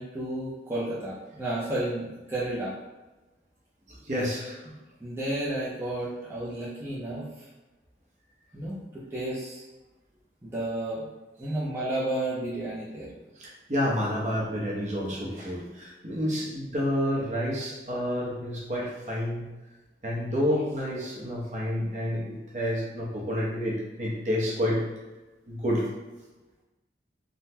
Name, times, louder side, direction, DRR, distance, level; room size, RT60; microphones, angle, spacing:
voice 1, 0.0-2.7 4.7-4.8 5.0-7.5 8.5-9.6 10.4-11.1 11.4-13.1, right 1 dB, 15° right, -9 dB, 0.5 m, -32 dB
voice 2, 4.0-4.6 13.4-19.5 20.0-24.8 25.5-25.8, equal, 40° right, -4 dB, 0.8 m, -29 dB
3.7 x 2.1 x 2.8 m, 1.1 s
head